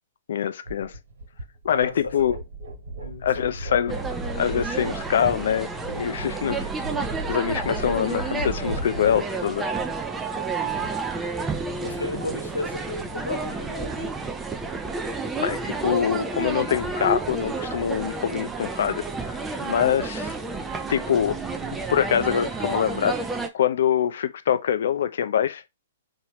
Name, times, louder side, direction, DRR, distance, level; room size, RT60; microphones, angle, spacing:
voice 1, 0.3-1.0 1.6-2.4 3.2-3.9 4.3-6.7 7.3-9.7 15.4-20.3 20.9-21.4 21.9-23.1 23.5-25.6, left 9 dB, 65° left, 0.5 m, -24 dB
sound 1, 0.6-9.2, right 2 dB, 70° right, 1.6 m, -35 dB
voice 2, 1.7-2.2 3.0-3.6 10.6-11.0 11.8-14.2, left 2 dB, 85° left, 1.1 m, -34 dB
sound 2, 3.9-23.5, right 3 dB, 10° right, 0.6 m, -30 dB
4.2 x 2.8 x 3.0 m
figure-of-eight pair, 115°, 0 cm